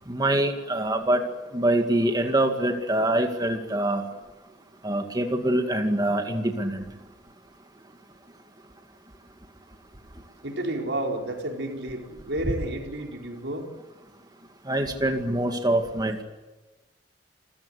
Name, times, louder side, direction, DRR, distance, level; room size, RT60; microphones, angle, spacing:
voice 1, 0.1-1.2 1.5-4.1 4.8-6.8 14.7-16.2, right 1 dB, 25° right, 4 dB, 2.1 m, -24 dB
voice 2, 10.4-13.7, right 1 dB, 90° right, 2 dB, 4.9 m, -31 dB
28.0 x 15.5 x 9.8 m, 1.1 s
head